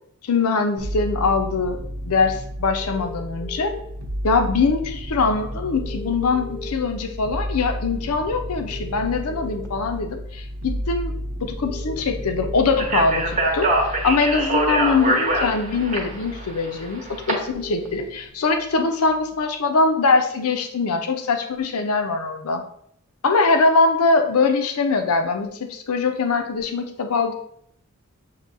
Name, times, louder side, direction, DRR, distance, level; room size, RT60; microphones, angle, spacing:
voice 1, 0.2-1.8 2.0-3.7 4.2-11.1 11.4-22.6 23.2-27.3, left 4 dB, 85° left, 5 dB, 0.6 m, -22 dB
sound 1, 0.8-18.2 18.5-19.3, equal, 85° right, 0.6 m, -33 dB
sound 2, 2.8-3.8 5.7-6.7 8.7-9.7 11.6-12.6 14.5-15.5 17.5-17.9, left 3 dB, 15° left, 0.4 m, -37 dB
Speech, 12.8-17.3, right 2 dB, 35° right, 0.9 m, -23 dB
6.8 x 2.7 x 2.6 m, 0.70 s
head